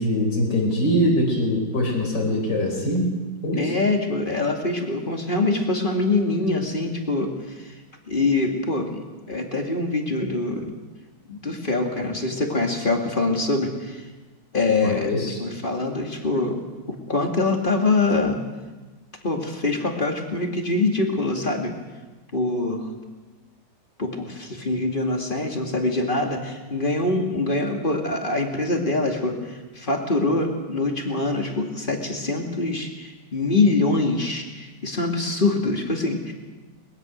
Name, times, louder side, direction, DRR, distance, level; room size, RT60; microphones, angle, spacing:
voice 1, 0.0-3.2 3.4-3.7 14.8-15.4, equal, 55° left, 1 dB, 4.8 m, -23 dB
voice 2, 3.6-7.7 8.1-10.7 11.3-14.0 14.5-15.1 15.4-16.6 16.9-18.4 19.2-21.8 22.3-22.9 24.0-36.3, left 2 dB, 25° left, 2 dB, 2.5 m, -24 dB
22.0 x 20.5 x 6.5 m, 1.2 s
omnidirectional pair, 2.1 m